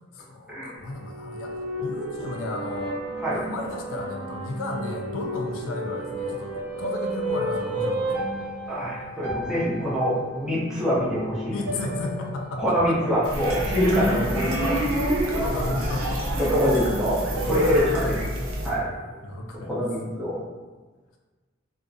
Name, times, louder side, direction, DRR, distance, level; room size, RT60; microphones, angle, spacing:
voice 1, 0.1-3.0 3.3-8.3 11.5-13.0 15.3-16.3 17.5-18.3 19.2-19.8, left 2 dB, 80° left, 2 dB, 0.3 m, -34 dB
sound 1, 0.8-19.4, right 1 dB, 55° right, 0.9 m, -32 dB
voice 2, 8.7-11.5 12.6-14.8 16.4-18.1 18.6-18.9 19.6-20.4, equal, 5° right, -9 dB, 0.6 m, -25 dB
sound 2, 13.2-18.7, right 1 dB, 75° right, 0.4 m, -30 dB
2.4 x 2.0 x 2.5 m, 1.3 s
head